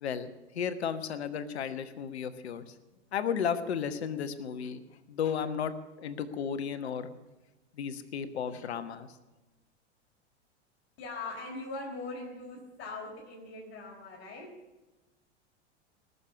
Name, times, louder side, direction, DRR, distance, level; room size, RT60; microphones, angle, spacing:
voice 1, 0.0-2.7 3.1-5.7 6.0-7.1 7.7-9.2, left 7 dB, 65° left, 12 dB, 1.3 m, -34 dB
voice 2, 11.0-14.5, left 3 dB, 35° left, -5 dB, 3.9 m, -41 dB
20.0 x 6.9 x 9.7 m, 1.1 s
figure-of-eight pair, 85°, 34 cm